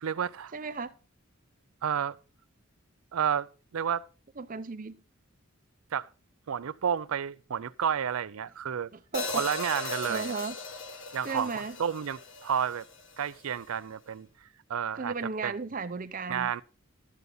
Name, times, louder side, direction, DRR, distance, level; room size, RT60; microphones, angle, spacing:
voice 1, 0.0-0.5 1.8-2.2 3.1-4.1 5.9-6.1 6.5-8.9 9.3-10.4 11.1-12.9 13.2-15.1 15.4-15.5 16.3-16.6, right 8 dB, 90° right, 0.5 m, -31 dB
voice 2, 0.5-0.9 4.4-5.0 9.1-9.4 9.9-10.5 11.2-11.8 15.0-16.5, right 4 dB, 40° right, 0.7 m, -35 dB
Hi-hat, 9.1-13.3, left 3 dB, 60° left, 1.3 m, -38 dB
12.5 x 8.2 x 3.9 m
head